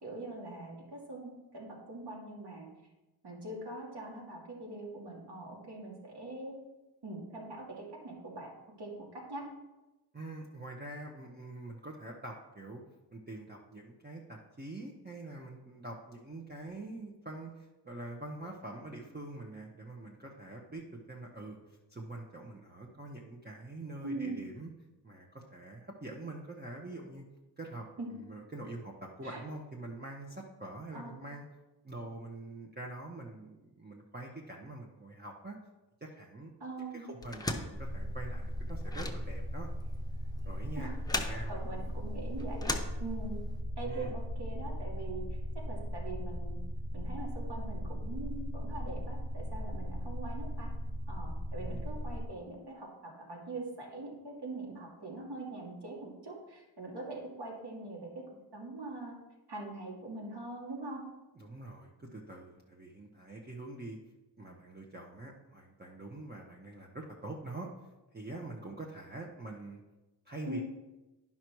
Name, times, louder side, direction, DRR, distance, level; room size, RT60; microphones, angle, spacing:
voice 1, 0.0-2.7 3.2-6.6 7.0-8.5 8.8-9.5 24.0-24.4 28.0-28.1 29.2-29.4 30.9-31.2 36.6-37.1 40.7-40.9 41.5-43.4 43.8-45.2 45.5-46.6 46.9-50.7 51.1-58.2 58.5-59.2 59.5-61.0 70.4-70.6, right 2 dB, 70° right, -2 dB, 2.5 m, -42 dB
voice 2, 10.1-12.8 13.1-24.7 25.0-27.3 27.6-27.9 28.1-31.5 31.8-35.6 36.0-36.5 36.9-39.7 40.4-42.0 43.8-44.2 51.6-51.9 61.4-64.0 64.4-67.7 68.1-69.8 70.3-70.6, right 2 dB, 25° right, -1 dB, 1.0 m, -45 dB
sound 1, 37.2-43.6, left 2 dB, 10° left, 0.8 m, -39 dB
sound 2, 37.7-52.2, equal, 45° right, 1.5 m, -38 dB
10.5 x 5.7 x 4.6 m, 1.1 s
wide cardioid pair, 95°, 43 cm